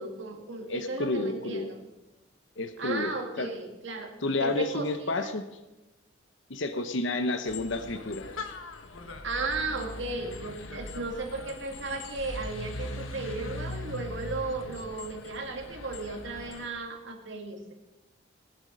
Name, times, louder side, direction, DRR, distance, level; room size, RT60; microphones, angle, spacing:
voice 1, 0.0-1.8 2.8-4.1 4.4-5.3 9.2-17.7, right 3 dB, 70° right, 4 dB, 2.0 m, -35 dB
voice 2, 0.7-1.7 2.6-3.5 4.2-5.4 6.5-8.2, left 2 dB, 70° left, 9 dB, 0.9 m, -30 dB
sound 1, 7.5-16.7, left 2 dB, 85° left, 1.4 m, -40 dB
19.0 x 8.0 x 5.3 m, 1.0 s
head